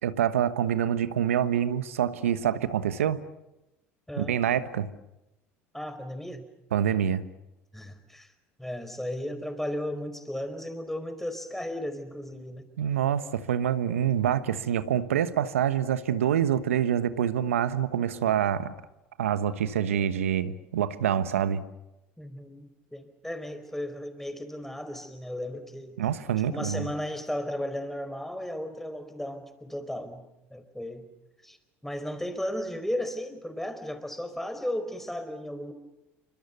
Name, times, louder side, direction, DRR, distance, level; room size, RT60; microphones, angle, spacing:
voice 1, 0.0-3.2 4.2-4.9 6.7-7.2 12.8-18.7 19.2-21.6 26.0-26.9, right 9 dB, 85° right, 1.2 m, -26 dB
voice 2, 5.7-6.4 7.7-8.3 8.6-12.7 22.2-26.0 26.5-30.2 30.5-31.0 31.4-31.6 31.8-35.7, left 1 dB, 5° left, 4.8 m, -35 dB
28.5 x 25.5 x 7.0 m
hypercardioid pair, 65°, 7 cm